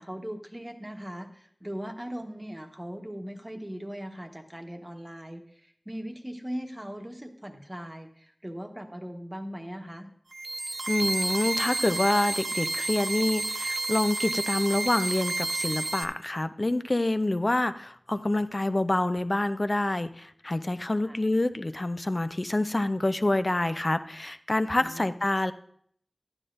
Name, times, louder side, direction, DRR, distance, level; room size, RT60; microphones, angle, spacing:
voice 1, 0.0-10.1 21.0-21.2 24.8-25.1, equal, 20° right, 4 dB, 1.2 m, -39 dB
sound 1, 10.3-16.0, right 2 dB, 80° right, 0.5 m, -30 dB
voice 2, 10.9-25.5, left 1 dB, 45° left, 11 dB, 0.5 m, -27 dB
12.5 x 9.8 x 2.6 m, 0.64 s
wide cardioid pair, 45°, 0 cm